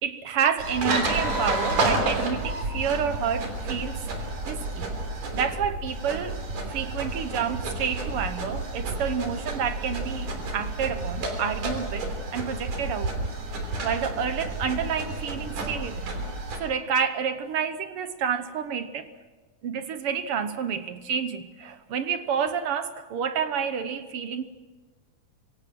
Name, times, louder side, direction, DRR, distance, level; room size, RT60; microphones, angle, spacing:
voice 1, 0.0-4.0 4.5-4.9 5.3-6.4 6.7-13.3 13.8-16.1 16.6-19.1 19.6-24.4, right 7 dB, 65° right, 11 dB, 1.4 m, -29 dB
sound 1, 0.6-16.6, right 2 dB, 85° right, 4.9 m, -30 dB
27.0 x 23.5 x 6.1 m, 1.3 s
omnidirectional pair, 3.6 m